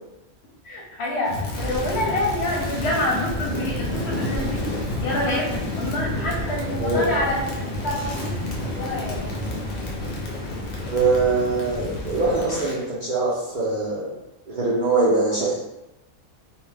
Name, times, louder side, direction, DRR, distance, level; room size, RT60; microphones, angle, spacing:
voice 1, 0.6-4.7 5.0-7.4 7.8-8.3 8.7-9.3, left 1 dB, 60° left, -2 dB, 0.7 m, -27 dB
Crackle, 1.2-12.8, left 1 dB, 85° left, 0.3 m, -29 dB
voice 2, 10.9-14.1 14.5-15.6, right 3 dB, 75° right, -6 dB, 0.4 m, -22 dB
2.4 x 2.1 x 3.2 m, 0.92 s
omnidirectional pair, 1.4 m